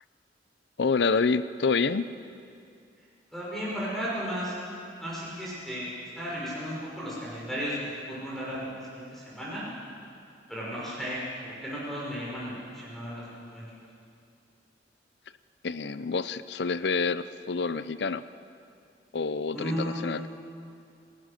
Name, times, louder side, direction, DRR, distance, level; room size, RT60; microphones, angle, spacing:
voice 1, 0.8-2.1 15.6-18.2 19.1-20.2, left 4 dB, 65° left, 14 dB, 0.6 m, -27 dB
voice 2, 3.3-4.6 5.0-5.9 6.2-9.7 10.5-13.7 19.5-20.3, equal, ahead, -7 dB, 5.7 m, -34 dB
28.0 x 17.5 x 6.7 m, 2.5 s
head